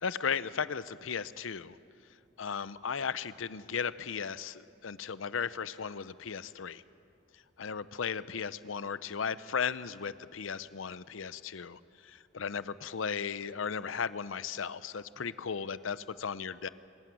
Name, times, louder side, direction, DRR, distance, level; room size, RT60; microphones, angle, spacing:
voice 1, 0.0-1.8 2.4-6.8 7.6-16.7, left 6 dB, 85° left, 16 dB, 0.6 m, -36 dB
25.5 x 15.0 x 9.3 m, 2.5 s
head